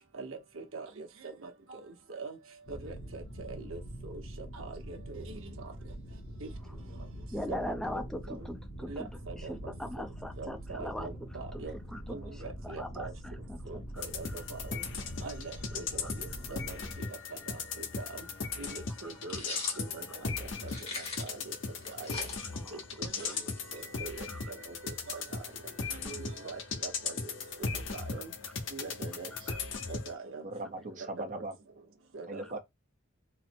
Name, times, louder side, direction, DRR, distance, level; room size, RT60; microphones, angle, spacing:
voice 1, 0.2-1.8 2.1-2.4 2.7-4.2 4.6-5.2 7.5-7.6 8.3-8.4 8.9-9.7 10.4-11.7 12.1-13.1 13.7-14.8 15.2-16.8 17.5-17.6 17.9-18.2 18.6-20.0 20.4-20.5 21.2-21.5 22.0-22.3 22.7-23.3 23.7-24.7 25.1-25.2 26.1-27.3 27.6-27.7 27.9-28.3 28.7-29.3 29.9-30.4 31.2-31.3 32.1-32.4, right 4 dB, 85° right, 1.0 m, -43 dB
sound 1, 2.6-16.9, right 1 dB, 85° left, 1.7 m, -44 dB
voice 2, 7.3-9.1 9.5-11.1 11.9-14.1 16.0-16.1 19.3-19.4 22.4-22.8 24.3-24.4 29.3-29.6, left 1 dB, ahead, 0.5 m, -40 dB
sound 2, 14.0-30.1, left 4 dB, 65° left, 0.9 m, -38 dB
sound 3, 19.3-19.8 20.7-21.4 21.8-23.8, left 3 dB, 30° left, 1.2 m, -41 dB
voice 3, 30.4-31.5 32.3-32.6, right 2 dB, 40° right, 0.7 m, -39 dB
4.1 x 2.1 x 4.4 m
head